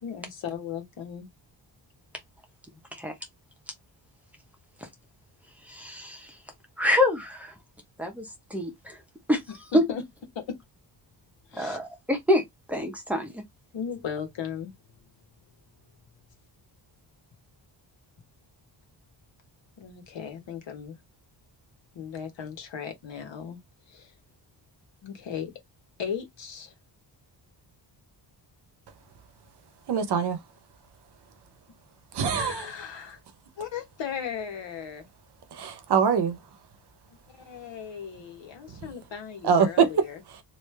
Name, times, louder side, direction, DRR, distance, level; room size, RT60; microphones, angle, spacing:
voice 1, 0.0-1.3 9.7-10.0 10.3-10.6 11.5-11.8 13.7-14.7 19.8-21.0 21.9-23.6 23.9-24.1 25.0-25.5 26.0-26.7 32.3-33.2 33.6-35.1 37.4-40.2, left 7 dB, 80° left, 1.3 m, -36 dB
voice 2, 5.7-6.4 6.8-7.5 8.0-9.0 9.3-9.4 9.7-9.8 11.5-13.4, left 1 dB, 5° right, 0.8 m, -26 dB
voice 3, 29.9-30.4 32.1-32.7 35.5-36.4 39.4-40.0 40.3-40.4, right 6 dB, 65° right, 0.8 m, -23 dB
3.2 x 2.7 x 3.2 m
wide cardioid pair, 180°, 44 cm